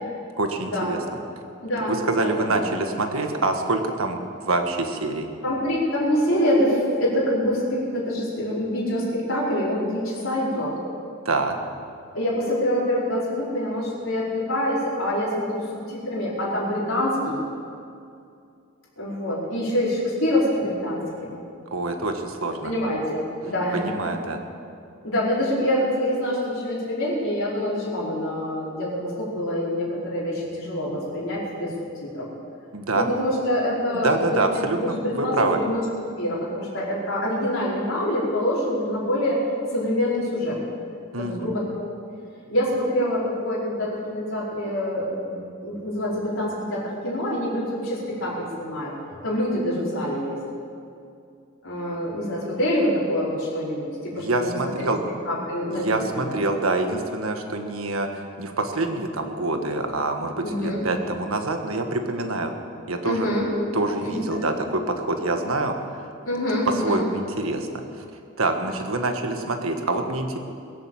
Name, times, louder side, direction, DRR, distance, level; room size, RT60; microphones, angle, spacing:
voice 1, 0.4-1.0 1.9-5.3 11.2-11.6 21.7-22.7 23.7-24.4 32.7-33.0 33.9-35.6 41.1-41.5 54.1-55.0 55.8-62.5 62.9-63.3 63.7-66.1 66.8-67.7 68.0-68.1 68.4-70.4, right 2 dB, 80° right, 5 dB, 1.5 m, -26 dB
voice 2, 1.6-2.6 5.4-10.8 12.1-17.4 19.0-21.4 22.6-24.1 25.0-31.7 32.0-32.3 32.9-34.4 34.8-35.8 36.2-39.4 39.7-40.6 41.2-41.6 42.5-48.9 49.2-50.4 51.6-54.9 55.2-56.3 60.4-60.8 63.0-63.5 64.0-64.4 66.2-67.0, left 1 dB, 65° left, -7 dB, 5.0 m, -25 dB
22.5 x 7.9 x 7.5 m, 2.5 s
head